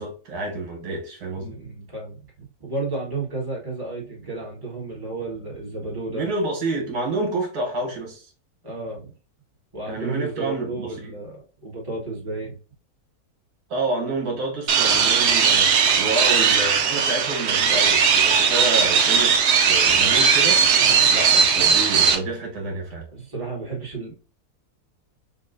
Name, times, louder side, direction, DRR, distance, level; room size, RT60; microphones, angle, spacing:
voice 1, 0.0-1.5 6.1-8.3 9.9-11.1 13.7-19.4 19.6-20.6 21.1-23.0, right 2 dB, 85° right, 1.9 m, -29 dB
voice 2, 1.3-6.2 8.6-9.1 9.7-12.6 20.8-21.1 23.1-24.1, right 3 dB, 15° right, 1.5 m, -32 dB
sound 1, 14.7-22.1, right 6 dB, 60° right, 0.8 m, -18 dB
5.2 x 2.5 x 2.6 m
omnidirectional pair, 1.6 m